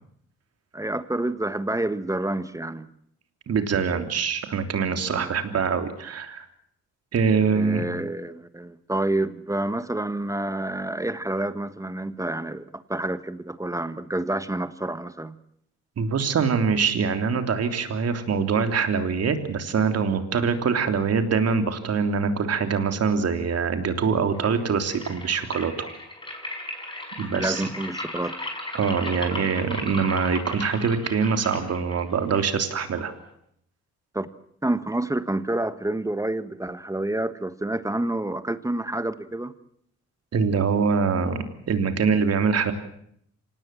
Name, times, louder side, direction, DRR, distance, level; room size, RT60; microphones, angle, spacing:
voice 1, 0.7-2.9 5.1-5.3 7.5-15.4 27.3-28.4 34.1-34.3 34.6-39.5, right 1 dB, 10° right, 13 dB, 1.3 m, -28 dB
voice 2, 3.5-6.5 7.1-7.8 16.0-25.9 27.2-27.6 28.7-33.1 40.3-42.7, right 5 dB, 55° right, 7 dB, 3.3 m, -24 dB
sound 1, 24.3-33.3, left 1 dB, 15° left, 5.9 m, -37 dB
26.0 x 18.5 x 7.7 m, 0.69 s
cardioid pair, 90°, 30 cm